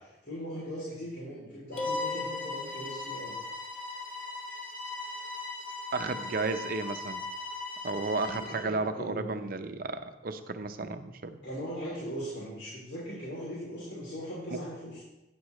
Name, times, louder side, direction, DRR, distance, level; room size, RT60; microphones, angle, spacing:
voice 1, 0.2-3.4 8.2-9.4 11.4-15.0, equal, 90° left, -7 dB, 3.0 m, -39 dB
Bowed string instrument, 1.7-8.7, left 3 dB, 10° left, 2.8 m, -38 dB
sound 1, 1.8-3.3, left 3 dB, 35° left, 1.0 m, -38 dB
voice 2, 5.9-7.2 7.8-11.4 14.5-14.6, right 3 dB, 55° right, 9 dB, 0.7 m, -33 dB
11.5 x 9.5 x 3.1 m, 1.0 s
head